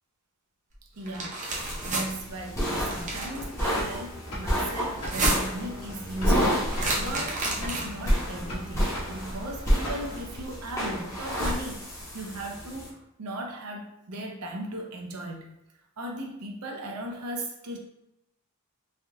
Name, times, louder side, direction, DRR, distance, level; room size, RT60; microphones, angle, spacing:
voice 1, 0.8-1.4 1.8-15.5 16.0-17.8, right 1 dB, 85° right, 1 dB, 0.6 m, -37 dB
sound 1, 1.0-2.1 2.8-3.4 4.9-5.6 6.7-8.1, right 2 dB, 35° right, 0.6 m, -30 dB
sound 2, 1.5-12.9, equal, 15° left, 0.7 m, -30 dB
sound 3, 2.8-10.4, equal, 90° left, 1.1 m, -40 dB
3.4 x 2.3 x 2.7 m, 0.85 s
head